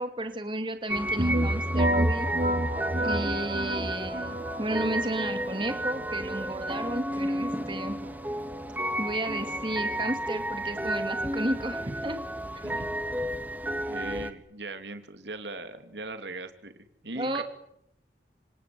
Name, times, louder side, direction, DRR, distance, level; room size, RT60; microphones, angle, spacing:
voice 1, 0.0-2.3 3.0-8.0 9.0-12.2 17.1-17.4, right 1 dB, 30° right, 7 dB, 2.6 m, -33 dB
sound 1, 0.9-14.3, right 1 dB, 10° right, 1.6 m, -32 dB
sound 2, 1.2-10.8, right 1 dB, 45° right, 2.4 m, -31 dB
voice 2, 12.6-13.0 13.9-17.4, right 2 dB, 90° right, 8 dB, 2.9 m, -39 dB
27.0 x 26.5 x 7.8 m, 0.77 s
head